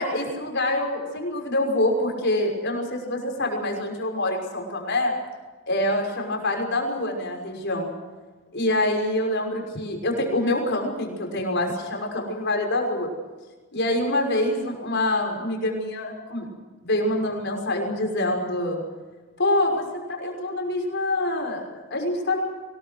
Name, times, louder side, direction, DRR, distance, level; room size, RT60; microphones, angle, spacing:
voice 1, 0.0-5.1 5.7-7.9 8.5-13.1 13.7-16.5 16.8-18.8 19.4-19.8 20.1-22.4, left 1 dB, 55° left, 2 dB, 6.1 m, -25 dB
24.5 x 21.0 x 6.2 m, 1.3 s
head